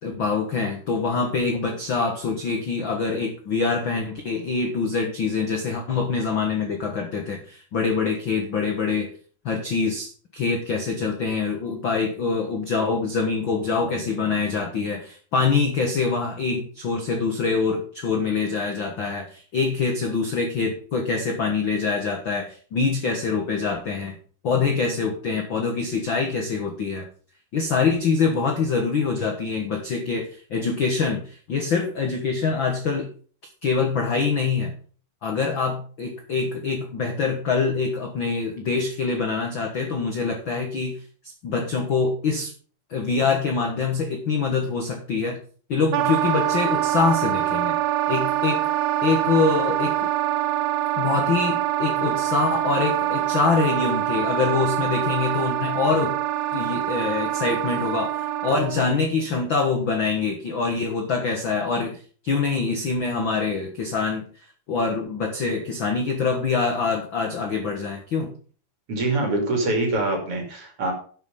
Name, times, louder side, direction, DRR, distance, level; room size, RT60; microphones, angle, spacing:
voice 1, 0.0-9.1 9.4-24.2 24.4-27.0 27.5-33.1 33.6-34.7 35.2-41.0 41.4-42.5 42.9-45.4 45.7-47.8 48.1-48.6 49.0-49.9 51.0-56.1 56.5-64.2 64.7-68.3, left 4 dB, 65° left, 3 dB, 1.2 m, -25 dB
Wind instrument woodwind instrument, 45.9-58.8, right 13 dB, 80° right, 2.6 m, -25 dB
voice 2, 68.9-70.9, right 2 dB, 40° right, 3 dB, 3.2 m, -24 dB
11.5 x 6.5 x 5.4 m, 0.42 s
omnidirectional pair, 4.5 m